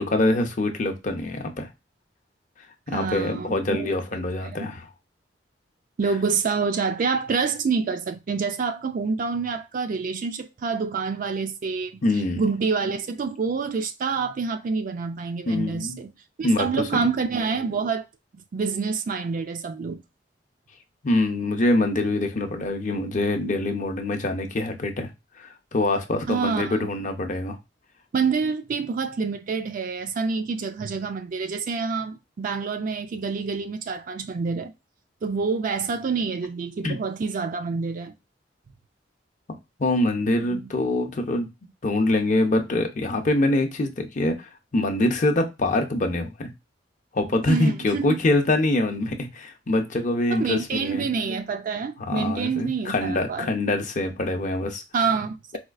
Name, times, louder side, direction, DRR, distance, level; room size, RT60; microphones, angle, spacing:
voice 1, 0.0-1.7 2.9-4.9 12.0-12.4 15.4-16.0 16.4-17.1 21.0-25.1 25.4-27.6 36.8-37.0 39.8-41.5 41.8-46.5 47.1-51.1 52.0-54.8, left 2 dB, 45° left, 0.6 m, -24 dB
voice 2, 2.9-4.7 6.0-12.0 12.4-16.1 16.4-18.1 18.5-20.0 26.3-26.9 28.1-34.7 35.2-38.1 40.4-40.7 47.5-48.2 50.3-53.5 54.9-55.6, right 5 dB, 50° right, 0.4 m, -27 dB
4.2 x 2.3 x 2.4 m
head